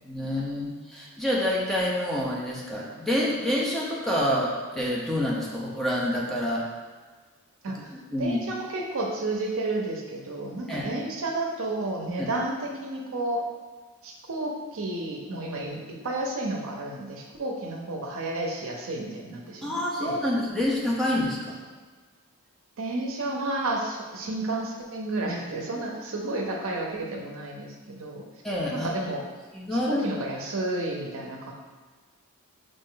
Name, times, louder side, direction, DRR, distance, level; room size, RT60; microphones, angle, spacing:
voice 1, 0.1-6.6 8.1-8.4 10.7-10.9 12.2-12.3 19.6-21.6 28.4-28.9 29.5-30.1, left 1 dB, ahead, -5 dB, 0.7 m, -27 dB
voice 2, 8.2-13.5 14.0-20.2 22.8-28.3 28.7-29.3 29.7-31.5, right 2 dB, 65° right, 1 dB, 0.6 m, -31 dB
5.3 x 2.6 x 3.8 m, 1.4 s
head